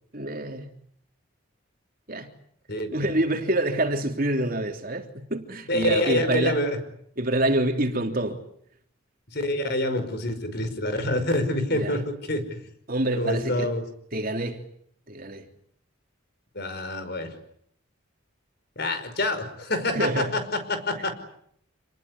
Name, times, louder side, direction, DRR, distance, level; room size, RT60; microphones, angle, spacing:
voice 1, 0.1-0.7 2.1-2.3 2.9-6.6 7.2-8.4 11.7-12.0 12.9-13.7 14.1-14.7 15.1-15.5 19.9-20.3 20.9-21.1, right 1 dB, 45° right, 3.4 m, -27 dB
voice 2, 2.7-3.1 5.7-6.8 9.3-12.4 13.2-13.8 16.6-17.4 18.8-21.1, left 1 dB, 50° left, 5.4 m, -27 dB
28.0 x 20.0 x 9.8 m
head